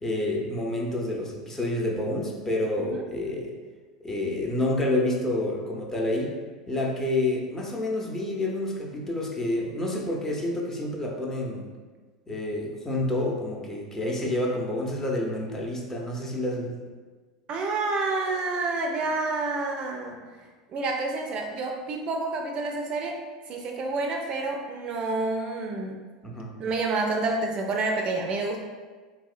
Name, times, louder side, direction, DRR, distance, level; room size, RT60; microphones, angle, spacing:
voice 1, 0.0-3.5 4.0-6.3 6.7-11.7 12.3-16.7 26.2-26.5, left 1 dB, 15° left, -1 dB, 0.6 m, -28 dB
voice 2, 17.5-20.2 20.7-23.2 23.5-26.0 26.6-28.6, right 3 dB, 40° right, 2 dB, 0.4 m, -28 dB
3.1 x 2.7 x 2.4 m, 1.4 s
hypercardioid pair, 85°, 3 cm